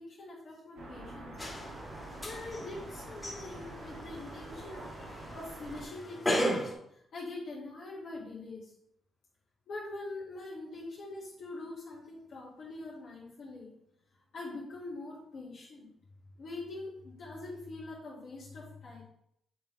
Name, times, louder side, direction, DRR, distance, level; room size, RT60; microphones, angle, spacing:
voice 1, 0.0-1.3 2.2-4.8 5.3-8.7 9.7-13.7 14.3-15.9 16.4-19.0, left 2 dB, 70° left, -8 dB, 2.0 m, -43 dB
sound 1, 0.7-5.8, right 2 dB, 80° right, 1.7 m, -46 dB
sound 2, 1.4-6.7, equal, 20° left, 2.0 m, -36 dB
6.8 x 3.7 x 4.0 m, 0.73 s
cardioid pair, 70°, 0 cm